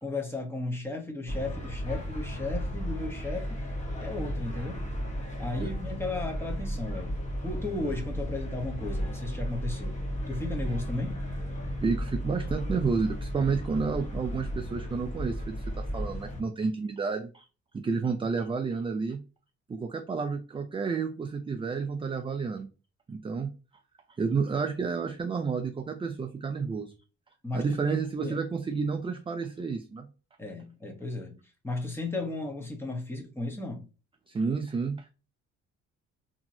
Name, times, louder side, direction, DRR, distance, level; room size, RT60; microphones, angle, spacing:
voice 1, 0.0-3.6 4.0-4.9 5.4-7.2 7.4-10.0 10.3-11.2 27.4-28.4 30.4-31.4 31.6-33.9, left 2 dB, 10° left, 0.9 m, -35 dB
sound 1, 1.3-16.4, equal, 25° left, 1.2 m, -34 dB
voice 2, 11.8-17.4 17.7-19.2 19.7-22.7 23.1-23.5 24.2-26.9 27.5-30.1 34.3-35.1, right 5 dB, 20° right, 0.3 m, -30 dB
2.8 x 2.8 x 2.6 m
cardioid pair, 90°, 30 cm